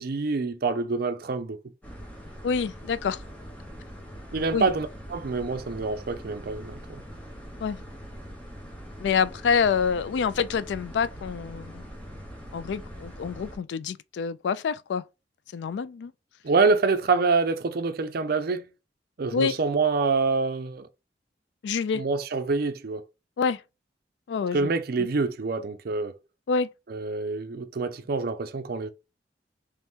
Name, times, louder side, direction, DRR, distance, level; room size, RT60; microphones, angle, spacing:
voice 1, 0.0-1.6 4.3-7.0 16.4-18.6 19.2-20.9 21.9-23.0 24.5-26.1 26.9-28.9, right 4 dB, 55° right, 0.5 m, -26 dB
sound 1, 1.8-13.6, equal, 10° left, 0.9 m, -42 dB
voice 2, 2.4-3.2 4.5-4.7 7.6-7.8 9.0-11.8 12.5-15.0 15.5-16.1 19.3-19.6 21.6-22.0 23.4-23.6 24.3-24.7 26.5-26.7, left 6 dB, 70° left, 0.3 m, -27 dB
3.1 x 2.8 x 3.5 m
head